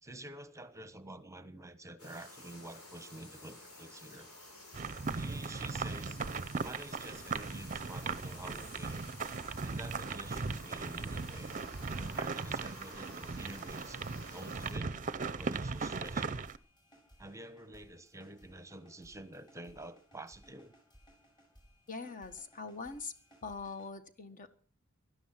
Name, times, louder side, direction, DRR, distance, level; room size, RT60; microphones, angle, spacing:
voice 1, 0.0-4.3 5.1-6.3 6.6-9.0 9.6-11.5 12.0-14.0 14.3-14.9 15.4-16.4 17.2-20.7, right 1 dB, 15° right, 1.1 m, -48 dB
sound 1, 2.0-14.7, left 2 dB, 85° left, 7.1 m, -52 dB
sound 2, 4.7-16.6, right 4 dB, 35° right, 0.7 m, -38 dB
sound 3, 7.3-23.9, equal, 20° left, 7.0 m, -63 dB
voice 2, 21.9-23.1 23.4-24.5, left 4 dB, 40° left, 1.5 m, -42 dB
16.5 x 12.5 x 5.8 m
head